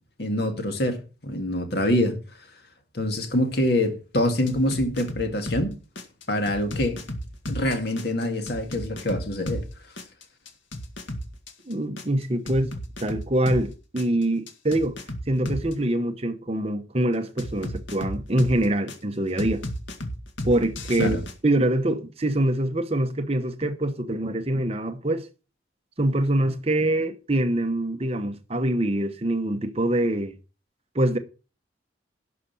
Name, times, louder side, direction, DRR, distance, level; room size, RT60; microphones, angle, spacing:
voice 1, 0.2-2.2 2.9-5.8 6.3-7.0 7.5-9.6 21.0-21.2, left 1 dB, 55° left, 2.0 m, -25 dB
sound 1, 4.5-5.6 5.9-9.7 10.0-13.6 14.0-15.7 17.4-19.0 19.4-21.3, equal, 80° left, 2.0 m, -33 dB
voice 2, 11.7-12.7 13.0-15.0 15.3-19.6 20.4-21.2 21.4-25.3 26.0-30.3 30.9-31.2, right 1 dB, 30° right, 0.9 m, -24 dB
11.5 x 5.6 x 6.8 m
head